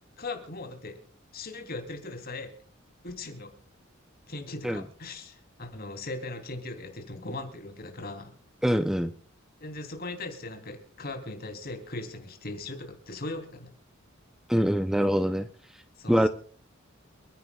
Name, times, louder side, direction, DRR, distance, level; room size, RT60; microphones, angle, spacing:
voice 1, 0.2-1.0 1.3-2.5 3.0-3.5 4.3-8.3 9.6-13.7 16.0-16.3, left 2 dB, 50° left, 5 dB, 3.1 m, -39 dB
voice 2, 8.6-9.1 14.5-15.5 16.1-16.3, equal, ahead, 10 dB, 0.5 m, -24 dB
29.0 x 10.5 x 2.3 m, 0.43 s
head